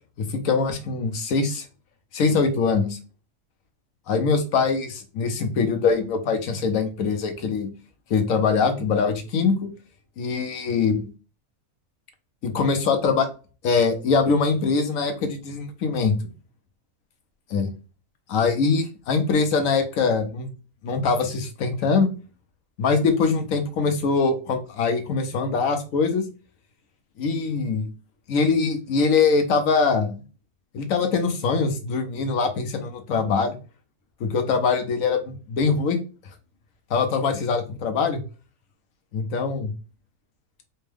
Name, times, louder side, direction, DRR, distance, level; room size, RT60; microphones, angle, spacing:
voice 1, 0.2-1.7 2.1-3.0 4.1-7.7 8.1-9.7 10.2-11.1 12.4-13.3 13.6-16.1 17.5-17.7 18.3-20.5 20.8-22.1 22.8-26.2 27.2-27.9 28.3-30.1 30.7-33.5 34.2-36.0 36.9-38.2 39.1-39.7, left 4 dB, 65° left, 6 dB, 1.0 m, -23 dB
4.4 x 2.2 x 3.3 m, 0.34 s
omnidirectional pair, 1.6 m